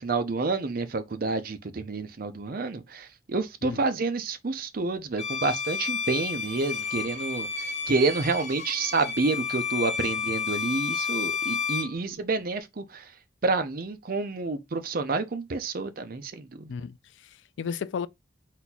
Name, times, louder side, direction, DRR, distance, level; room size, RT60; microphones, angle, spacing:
voice 1, 0.0-13.0 13.4-16.7, right 3 dB, 55° right, 0.6 m, -29 dB
Bowed string instrument, 5.2-12.0, left 6 dB, 40° left, 0.8 m, -31 dB
voice 2, 16.7-18.1, left 6 dB, 85° left, 0.3 m, -34 dB
4.1 x 2.3 x 4.0 m
head